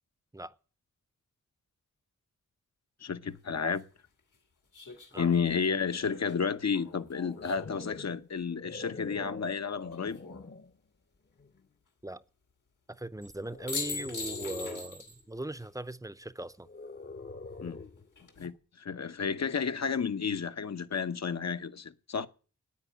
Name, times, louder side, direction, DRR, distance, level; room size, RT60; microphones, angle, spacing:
voice 1, 3.0-3.8 5.2-10.2 17.6-17.8 18.4-22.3, left 6 dB, 60° left, 0.9 m, -31 dB
sound 1, 3.3-3.4 4.7-8.0 9.8-10.4 13.2-13.4 13.7-15.2 15.5-15.6 18.0-18.5, left 4 dB, 85° left, 2.4 m, -42 dB
sound 2, 7.1-10.8 11.4-11.7 13.4-15.0 16.6-18.1, left 3 dB, 35° left, 0.8 m, -45 dB
voice 2, 12.9-16.7, right 1 dB, 10° right, 0.7 m, -39 dB
9.6 x 9.2 x 8.7 m
cardioid pair, 65°, 31 cm